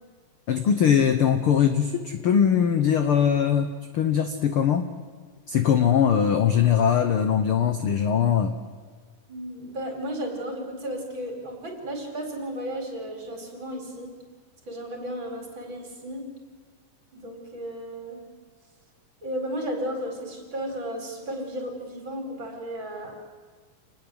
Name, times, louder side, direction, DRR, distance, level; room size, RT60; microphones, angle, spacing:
voice 1, 0.5-4.9 5.5-8.5, left 8 dB, 65° left, 8 dB, 1.3 m, -21 dB
voice 2, 9.3-14.1 14.7-16.3 17.1-18.2 19.2-23.1, equal, 35° right, 3 dB, 5.2 m, -34 dB
28.0 x 20.0 x 8.0 m, 1.6 s
omnidirectional pair, 3.9 m